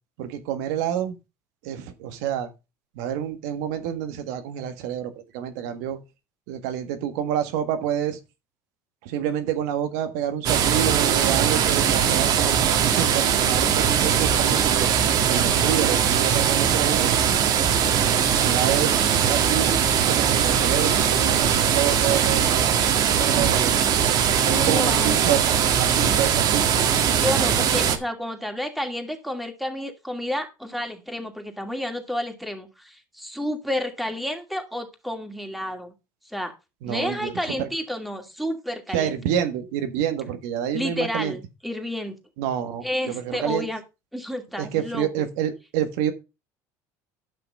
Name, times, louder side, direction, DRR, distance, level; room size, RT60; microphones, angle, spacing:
voice 1, 0.2-1.2 1.6-2.5 2.9-6.0 6.5-8.2 9.0-14.9 15.3-17.4 18.4-22.7 23.1-23.8 24.4-26.7 36.8-37.3 37.6-37.7 38.9-41.4 42.4-43.7 44.6-46.1, right 10 dB, 85° right, 1.6 m, -28 dB
sound 1, 10.4-28.0, right 8 dB, 55° right, 1.7 m, -20 dB
voice 2, 24.4-25.2 27.1-35.9 36.2-36.5 36.9-39.1 40.7-42.2 42.8-43.8 44.1-45.1, left 1 dB, ahead, 2.5 m, -30 dB
11.0 x 5.9 x 5.3 m
supercardioid pair, 115°, 8 cm